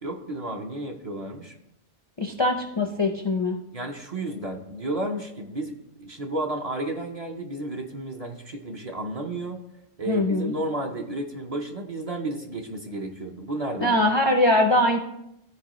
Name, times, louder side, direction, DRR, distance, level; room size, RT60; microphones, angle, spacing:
voice 1, 0.0-1.5 3.7-9.6 10.0-13.9, right 2 dB, 40° right, 2 dB, 0.7 m, -32 dB
voice 2, 2.2-3.6 10.1-10.5 13.8-15.0, left 1 dB, 35° left, 4 dB, 0.4 m, -22 dB
13.5 x 4.6 x 3.0 m, 0.83 s
omnidirectional pair, 1.2 m